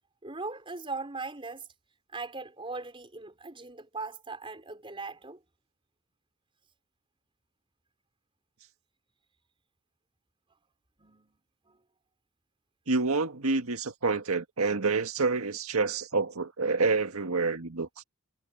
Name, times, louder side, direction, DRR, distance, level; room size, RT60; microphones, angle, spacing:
voice 1, 0.2-1.7 2.1-5.4 11.0-11.4 11.7-11.8, right 3 dB, 25° right, 4.0 m, -39 dB
voice 2, 12.9-17.9, right 3 dB, 85° right, 1.8 m, -28 dB
head